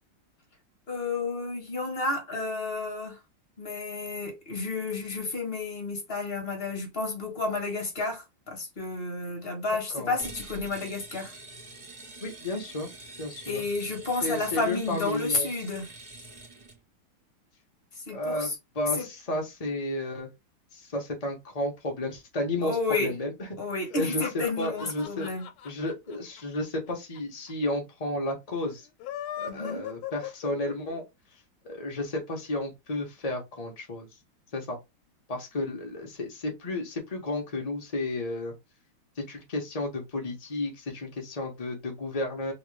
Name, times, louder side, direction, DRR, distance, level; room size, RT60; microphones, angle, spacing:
voice 1, 0.9-3.2 3.6-11.3 13.5-15.9 18.1-18.5 19.0-19.1 22.6-23.1 23.6-25.4 29.4-29.8, left 3 dB, 35° left, 1.2 m, -31 dB
sound 1, 10.2-16.8, right 2 dB, 25° right, 0.9 m, -46 dB
voice 2, 12.2-12.9 13.2-13.6 14.2-15.5 18.1-18.5 18.7-20.3 20.7-23.5 24.0-25.3 25.6-28.9 29.4-31.0 31.6-34.1 34.5-34.8 35.3-38.5 39.2-42.5, left 1 dB, 60° left, 0.3 m, -32 dB
sound 2, 23.8-27.2 27.5-27.6 27.8-27.9 28.8-31.0, left 11 dB, 90° left, 1.5 m, -39 dB
3.2 x 3.2 x 3.2 m
omnidirectional pair, 2.3 m